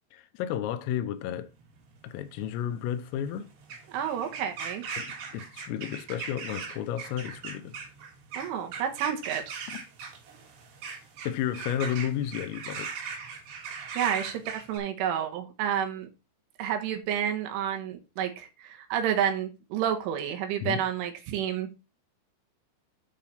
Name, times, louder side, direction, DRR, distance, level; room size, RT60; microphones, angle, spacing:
voice 1, 0.1-1.5 2.0-3.5 5.0-7.8 11.3-12.9 20.6-20.8, left 10 dB, 85° left, 3.4 m, -32 dB
sound 1, 1.4-14.8, right 5 dB, 60° right, 4.2 m, -40 dB
voice 2, 3.9-4.8 8.4-9.5 14.0-16.1 16.6-21.7, right 9 dB, 80° right, 3.6 m, -30 dB
9.1 x 4.9 x 5.6 m
omnidirectional pair, 5.9 m